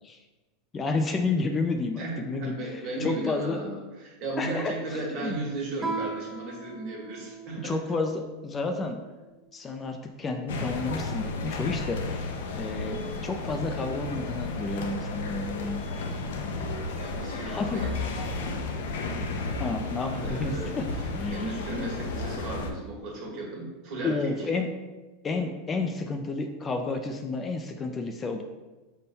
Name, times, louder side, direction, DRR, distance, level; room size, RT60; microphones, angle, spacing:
voice 1, 0.7-3.6 4.4-5.4 7.6-9.0 9.5-15.8 17.4-17.8 19.6-20.8 21.1-21.4 24.0-24.7 25.2-28.4, left 3 dB, 20° left, 5 dB, 0.3 m, -31 dB
voice 2, 2.0-7.8 17.0-18.2 20.1-24.4, right 2 dB, 50° right, -2 dB, 1.3 m, -35 dB
Guitar, 5.8-8.2, right 3 dB, 10° right, 0.7 m, -37 dB
sound 1, 10.5-22.7, left 3 dB, 85° left, 0.5 m, -33 dB
5.3 x 2.2 x 4.1 m, 1.2 s
supercardioid pair, 135°, 0 cm